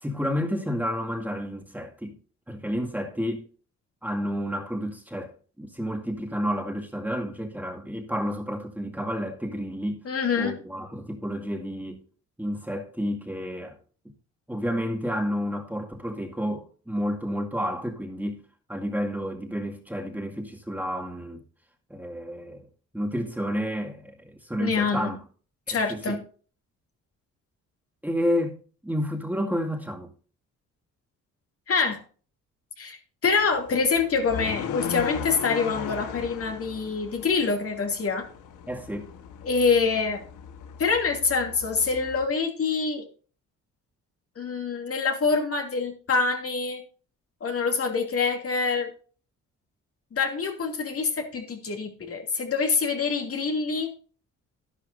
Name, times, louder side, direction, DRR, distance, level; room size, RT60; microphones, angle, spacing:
voice 1, 0.0-2.2 2.5-3.5 4.0-10.0 10.4-12.0 12.4-13.8 14.5-18.4 18.7-21.4 21.9-22.7 22.9-25.2 25.7-26.2 28.0-30.1 38.7-39.1, equal, 5° right, 2.2 m, -30 dB
voice 2, 10.1-10.6 24.6-25.1 25.7-26.2 31.7-32.0 32.8-33.0 33.2-38.3 39.4-40.2 40.8-43.1 44.4-46.8 47.4-48.9 50.1-53.9, left 5 dB, 50° left, 2.6 m, -25 dB
sound 1, 33.3-42.2, left 8 dB, 90° left, 1.4 m, -37 dB
11.5 x 11.0 x 2.7 m
cardioid pair, 90°, 30 cm